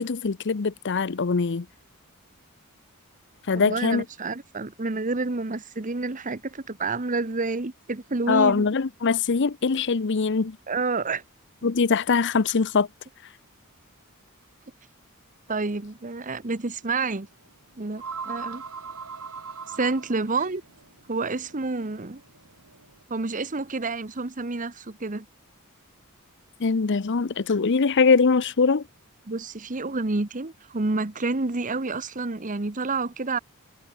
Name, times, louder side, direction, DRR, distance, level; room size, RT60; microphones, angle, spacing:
voice 1, 0.0-1.6 3.5-4.0 8.3-10.6 11.6-12.9 26.6-28.8, left 5 dB, 55° left, 0.6 m, -22 dB
voice 2, 3.5-8.7 10.7-11.2 15.5-17.3 17.8-18.6 19.7-20.6 21.1-22.2 23.1-25.2 29.3-33.4, right 3 dB, 35° right, 1.1 m, -29 dB
sound 1, 15.8-15.9 16.2-16.3 17.4-17.5 17.8-23.0, right 5 dB, 85° right, 3.7 m, -40 dB
head